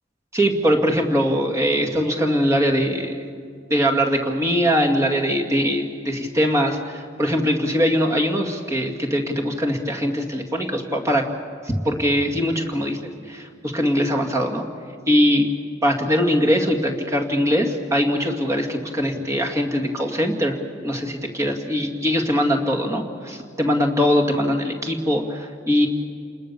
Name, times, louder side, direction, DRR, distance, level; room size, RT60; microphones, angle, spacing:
voice 1, 0.3-3.3 3.7-11.3 11.6-13.0 13.3-14.6 15.1-15.5 15.8-20.6 20.8-25.9, equal, 15° right, 1 dB, 2.3 m, -21 dB
28.5 x 20.5 x 7.0 m, 2.2 s
head